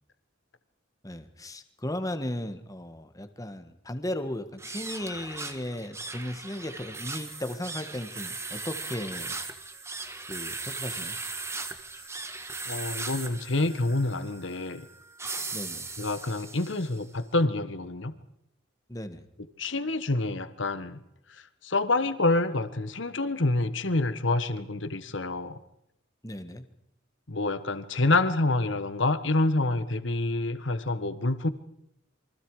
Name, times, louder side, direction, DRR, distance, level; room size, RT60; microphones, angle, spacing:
voice 1, 1.0-9.4 10.3-11.2 15.5-15.9 18.9-19.2 26.2-26.7, left 1 dB, 20° left, 9 dB, 1.6 m, -36 dB
sound 1, 4.5-17.0, right 3 dB, 15° right, 1.4 m, -38 dB
voice 2, 12.7-14.8 16.0-18.2 19.6-21.0 21.3-25.6 27.3-31.5, left 2 dB, 65° left, 12 dB, 1.4 m, -27 dB
28.0 x 24.5 x 4.9 m, 0.77 s
head